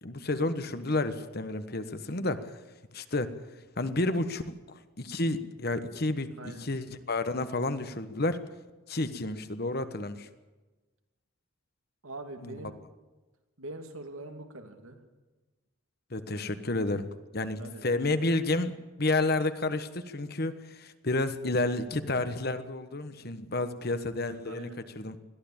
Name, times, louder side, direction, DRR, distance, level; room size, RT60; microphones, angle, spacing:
voice 1, 0.0-2.6 2.9-3.3 3.8-8.4 8.9-10.3 12.4-12.6 16.1-17.1 17.3-24.7 24.9-25.2, left 2 dB, 45° left, 10 dB, 1.3 m, -30 dB
voice 2, 12.0-12.8 13.6-15.0 16.3-16.6 17.4-17.9 24.4-24.8, right 2 dB, 85° right, 6 dB, 2.7 m, -43 dB
21.5 x 14.5 x 8.7 m, 1.2 s
head